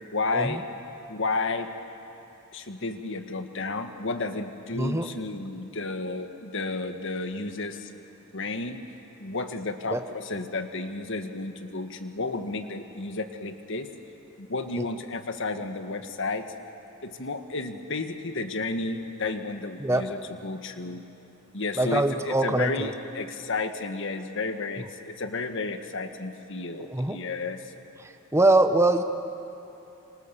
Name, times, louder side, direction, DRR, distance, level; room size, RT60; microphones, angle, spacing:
voice 1, 0.1-0.6 1.1-1.7 2.5-7.9 8.3-8.8 9.2-13.9 14.4-16.5 17.0-21.0 21.5-27.6, left 3 dB, 60° left, 7 dB, 1.4 m, -32 dB
voice 2, 4.7-5.1 9.9-10.0 19.8-20.0 21.8-22.9 26.9-27.2 28.0-29.0, right 2 dB, 10° right, 7 dB, 0.9 m, -23 dB
26.5 x 25.0 x 6.9 m, 2.8 s
head